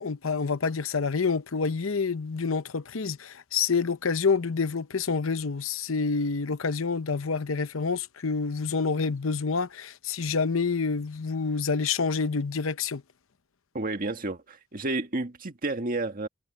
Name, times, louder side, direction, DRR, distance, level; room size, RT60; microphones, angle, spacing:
voice 1, 0.0-13.0, left 5 dB, 75° left, 0.8 m, -28 dB
voice 2, 13.7-16.3, right 2 dB, 45° right, 1.8 m, -31 dB
head